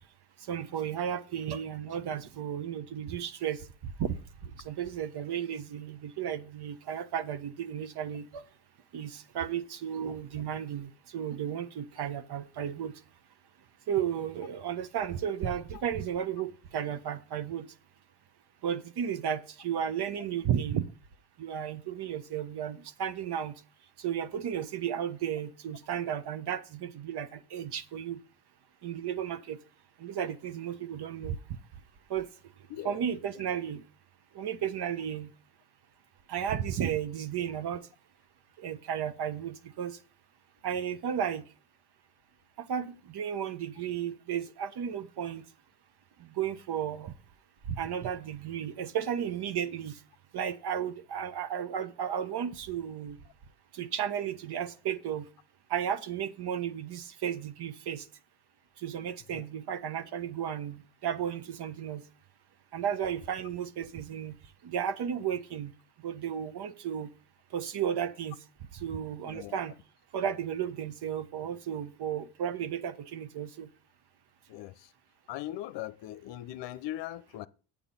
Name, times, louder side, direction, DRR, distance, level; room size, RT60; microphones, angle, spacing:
voice 1, 0.5-3.6 4.0-4.2 4.6-8.4 8.9-12.9 13.9-17.7 18.6-20.8 21.4-23.5 24.0-28.2 28.8-29.6 30.0-31.4 32.1-32.3 32.8-33.8 34.3-35.3 36.3-37.8 38.6-40.0 40.6-41.4 42.6-45.4 46.2-47.1 47.7-49.9 50.3-53.2 53.7-55.2 55.7-58.0 58.8-62.0 62.7-64.3 64.6-65.7 66.0-67.1 67.5-68.4 68.8-69.7 70.1-73.7, right 9 dB, 50° right, 1.2 m, -34 dB
voice 2, 69.2-69.6 74.5-74.9 75.3-77.5, left 14 dB, 60° left, 0.8 m, -40 dB
8.9 x 8.6 x 4.2 m
hypercardioid pair, 70°, 50 cm